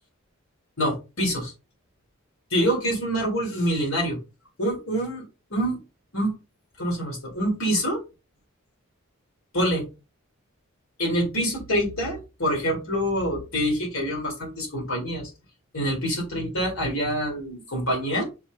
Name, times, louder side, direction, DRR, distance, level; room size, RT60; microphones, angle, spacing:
voice 1, 0.8-1.5 2.5-4.2 4.6-5.2 5.5-5.8 6.1-6.3 6.8-8.0 9.5-9.8 11.0-15.3 15.7-18.2, equal, 75° left, 0 dB, 4.0 m, -26 dB
7.2 x 5.4 x 2.8 m, 0.28 s
head